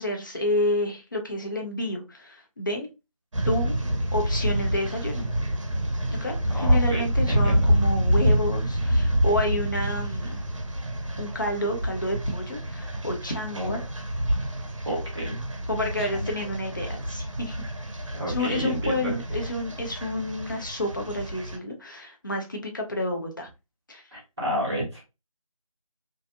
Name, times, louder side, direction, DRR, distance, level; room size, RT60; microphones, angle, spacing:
voice 1, 0.0-2.9 3.5-3.7 4.1-5.2 6.1-10.4 11.2-13.8 15.7-17.6 18.3-23.5 23.9-24.0 24.4-24.5, left 1 dB, 35° left, 2 dB, 0.6 m, -30 dB
sound 1, 3.3-21.6, equal, 55° right, 0.6 m, -27 dB
voice 2, 6.5-7.7 13.5-13.8 14.8-15.4 16.0-16.2 18.1-19.2 24.1-25.0, equal, 5° right, -14 dB, 0.7 m, -31 dB
2.5 x 2.3 x 2.5 m, 0.26 s
figure-of-eight pair, 170°, 19 cm